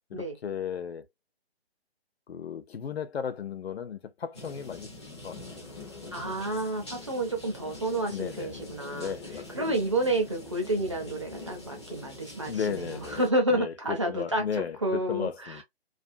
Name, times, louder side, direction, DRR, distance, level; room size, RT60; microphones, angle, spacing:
voice 1, 0.1-1.0 2.3-5.4 8.1-8.6 8.9-9.5 12.4-13.2 13.5-13.7 14.1-15.6, left 7 dB, 70° left, 0.6 m, -35 dB
sound 1, 4.3-13.3, left 2 dB, 25° left, 0.5 m, -44 dB
voice 2, 6.1-9.1 9.5-14.4 14.8-15.6, right 1 dB, 30° right, 0.5 m, -30 dB
2.5 x 2.1 x 2.5 m
hypercardioid pair, 165°, 32 cm